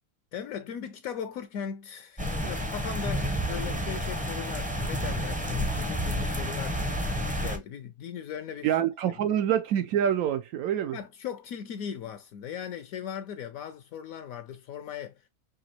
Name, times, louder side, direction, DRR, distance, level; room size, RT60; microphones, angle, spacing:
voice 1, 0.3-6.8 7.4-8.7 10.9-15.1, left 8 dB, 75° left, 1.0 m, -38 dB
sound 1, 2.2-7.6, equal, 10° right, 0.4 m, -30 dB
voice 2, 8.6-11.0, right 10 dB, 80° right, 1.0 m, -26 dB
5.1 x 2.8 x 2.8 m
omnidirectional pair, 1.5 m